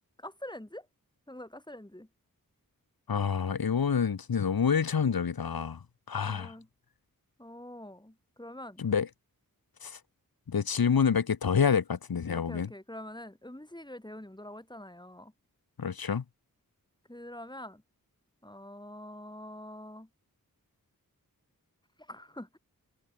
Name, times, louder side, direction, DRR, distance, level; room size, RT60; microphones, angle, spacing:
voice 1, 0.2-0.9 1.3-2.1 6.3-6.7 7.4-8.8 12.3-15.3 17.1-17.8 18.4-20.1 22.0-22.6, left 1 dB, 10° left, 7.4 m, -45 dB
voice 2, 3.1-6.5 8.8-9.1 9.8-10.0 10.5-12.7 15.8-16.2, left 6 dB, 85° left, 1.3 m, -28 dB
wide cardioid pair, 85°, 35 cm